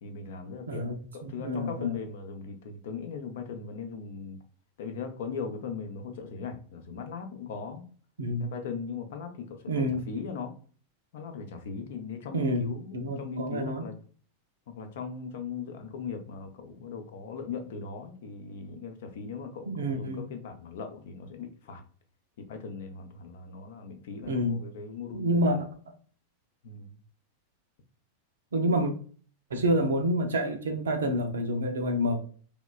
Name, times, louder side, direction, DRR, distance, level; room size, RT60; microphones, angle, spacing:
voice 1, 0.0-0.9 1.1-4.4 4.8-7.9 8.4-10.5 11.1-14.0 14.7-21.8 22.4-25.4 26.6-27.0, left 5 dB, 55° left, 6 dB, 0.5 m, -39 dB
voice 2, 0.7-1.0 1.2-2.0 8.2-8.5 9.7-10.0 12.3-13.9 19.7-20.3 24.2-24.6 25.1-25.7 28.5-28.9 29.5-32.2, equal, 65° right, 6 dB, 0.4 m, -28 dB
3.1 x 2.1 x 2.2 m, 0.44 s
figure-of-eight pair, 90°, 0 cm